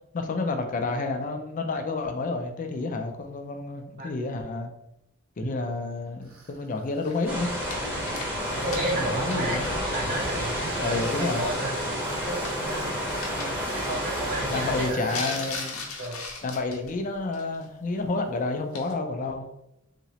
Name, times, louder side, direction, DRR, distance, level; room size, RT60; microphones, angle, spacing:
voice 1, 0.1-4.7 5.4-7.5 8.9-9.7 10.8-11.5 14.5-15.9 16.4-19.5, left 3 dB, 40° left, 5 dB, 0.4 m, -30 dB
Tools, 6.2-15.7, right 2 dB, 75° right, 1.1 m, -47 dB
sound 1, 7.0-10.0 10.3-10.4 12.0-12.7 13.1-13.4 15.0-16.9 17.3-17.6 18.7-18.9, left 4 dB, 90° left, 0.6 m, -38 dB
sound 2, 7.3-14.9, equal, 10° right, 0.8 m, -30 dB
voice 2, 8.6-9.6 9.9-11.8 12.3-13.1 13.7-15.4 16.0-16.2, right 1 dB, 45° right, -2 dB, 0.5 m, -32 dB
2.9 x 2.8 x 2.8 m, 0.83 s
head